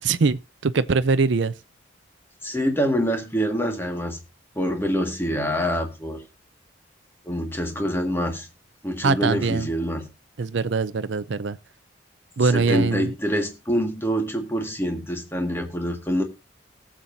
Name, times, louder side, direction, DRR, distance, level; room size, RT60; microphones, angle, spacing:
voice 1, 0.0-1.5 9.0-9.7 10.4-11.6 12.4-13.1, right 4 dB, 70° right, 0.5 m, -22 dB
voice 2, 2.4-4.2 4.6-6.2 7.2-8.5 8.8-10.1 12.4-16.2, equal, 10° left, 1.8 m, -25 dB
19.0 x 7.4 x 2.6 m
head